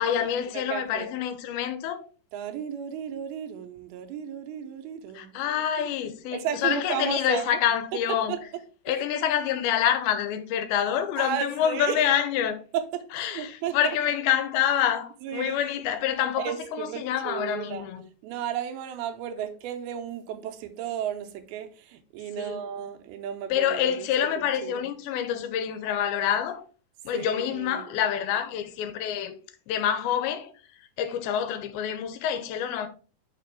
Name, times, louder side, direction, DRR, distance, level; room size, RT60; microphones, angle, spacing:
voice 1, 0.0-2.0 5.1-8.4 8.9-12.6 13.1-18.1 22.4-22.6 23.5-26.6 27.1-29.4 29.7-30.5 31.0-32.9, left 9 dB, 85° left, 2.5 m, -27 dB
voice 2, 0.5-1.1 2.3-5.9 6.3-7.6 8.3-8.4 8.9-9.1 11.2-12.1 12.7-14.0 15.2-15.6 16.4-17.9 18.2-24.9 27.1-27.9, right 9 dB, 90° right, 2.6 m, -34 dB
5.7 x 5.1 x 3.4 m
omnidirectional pair, 4.4 m